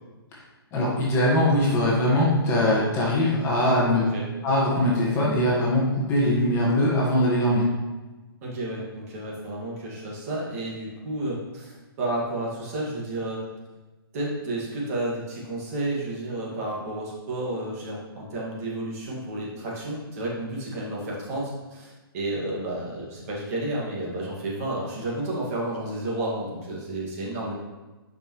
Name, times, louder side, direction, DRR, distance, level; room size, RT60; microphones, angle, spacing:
voice 1, 0.7-4.1 4.4-7.6, left 1 dB, 20° left, -5 dB, 1.5 m, -22 dB
voice 2, 8.4-13.4 14.1-27.5, right 1 dB, 35° right, -4 dB, 2.0 m, -31 dB
9.0 x 5.3 x 3.1 m, 1.2 s
hypercardioid pair, 150°, 13 cm